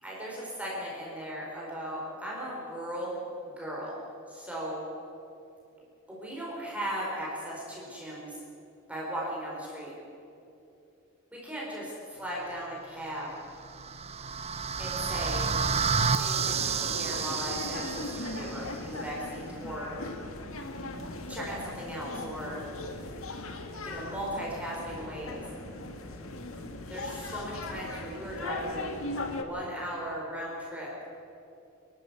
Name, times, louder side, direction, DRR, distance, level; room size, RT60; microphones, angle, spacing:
voice 1, 0.0-4.0 4.3-4.8 6.1-8.4 8.9-9.9 11.3-13.3 14.8-15.5 16.1-19.9 21.3-22.6 23.8-25.4 26.9-29.1 29.3-30.9, equal, 5° right, -5 dB, 4.4 m, -37 dB
sound 1, 13.5-18.6, right 5 dB, 30° right, 0.7 m, -30 dB
sound 2, 16.3-29.4, left 2 dB, 70° left, 1.8 m, -39 dB
26.5 x 12.0 x 8.2 m, 2.8 s
head